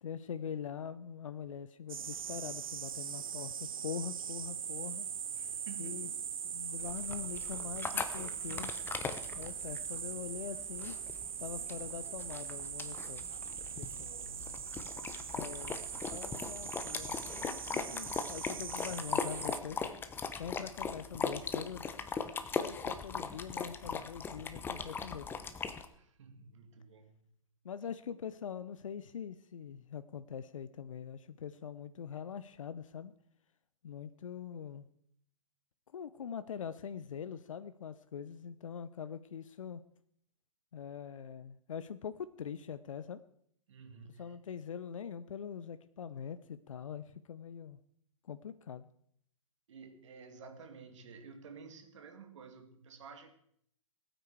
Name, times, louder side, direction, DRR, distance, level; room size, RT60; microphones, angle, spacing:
voice 1, 0.0-5.1 5.8-6.1 6.4-8.7 9.3-10.9 11.4-13.2 13.7-14.1 15.3-15.8 16.1-19.8 20.4-21.9 22.6-25.3 27.6-33.1 33.8-34.9 35.9-39.8 40.7-43.2 44.2-47.8 48.2-48.9, left 7 dB, 70° left, 0.7 m, -43 dB
sound 1, 1.9-19.6, right 8 dB, 80° right, 0.4 m, -41 dB
voice 2, 5.3-6.2 13.7-14.8 15.7-16.1 25.9-27.4 43.7-44.4 49.7-53.3, right 5 dB, 60° right, 2.4 m, -53 dB
sound 2, 6.8-25.8, left 5 dB, 10° left, 1.0 m, -39 dB
20.5 x 9.2 x 4.8 m
figure-of-eight pair, 120°, 18 cm